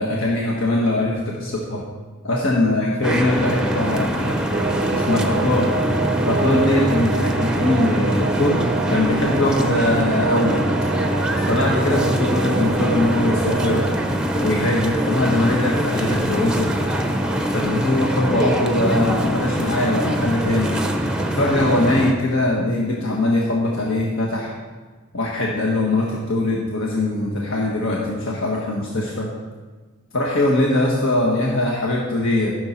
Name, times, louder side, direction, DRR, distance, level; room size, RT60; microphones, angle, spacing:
voice 1, 0.0-1.8 2.2-4.4 4.9-5.7 6.3-10.6 11.5-13.9 14.4-16.7 17.5-20.8 21.3-24.5 25.1-29.3 30.1-32.5, left 2 dB, 75° left, -3 dB, 1.5 m, -21 dB
sound 1, 3.0-22.1, equal, 5° right, 0.7 m, -23 dB
sound 2, 4.5-14.0, right 4 dB, 50° right, 0.4 m, -27 dB
14.0 x 6.7 x 4.4 m, 1.4 s
head